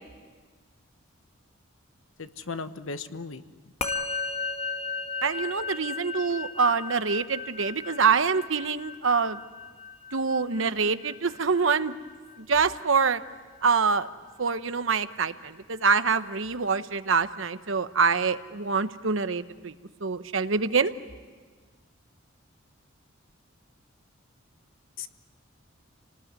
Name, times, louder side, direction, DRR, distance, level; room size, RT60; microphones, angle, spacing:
voice 1, 2.2-3.4 25.0-25.1, left 4 dB, 75° left, 10 dB, 1.1 m, -36 dB
Musical instrument, 3.8-13.3, left 4 dB, 30° left, 1.5 m, -36 dB
voice 2, 5.2-9.4 10.1-11.9 12.4-13.2 13.6-14.1 14.4-19.7 20.0-20.9, right 5 dB, 70° right, 11 dB, 1.0 m, -25 dB
29.0 x 19.5 x 9.6 m, 1.5 s
head